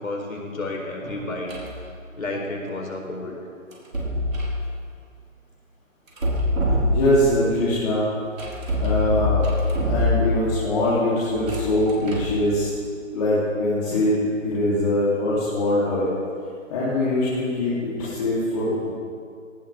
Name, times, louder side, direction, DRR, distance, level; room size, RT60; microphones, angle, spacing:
voice 1, 0.0-1.5 2.1-3.4, left 2 dB, 85° left, 0 dB, 4.0 m, -31 dB
sound 1, 1.5-1.8 3.7-4.6 6.1-7.4 8.4-10.6 11.3-12.4, left 1 dB, 85° right, 4.4 m, -24 dB
voice 2, 6.9-8.1 8.7-9.5 9.9-12.7 13.1-16.1 16.7-18.9, left 1 dB, 30° left, -10 dB, 3.3 m, -22 dB
18.0 x 18.0 x 3.6 m, 2.3 s
figure-of-eight pair, 155°, 40 cm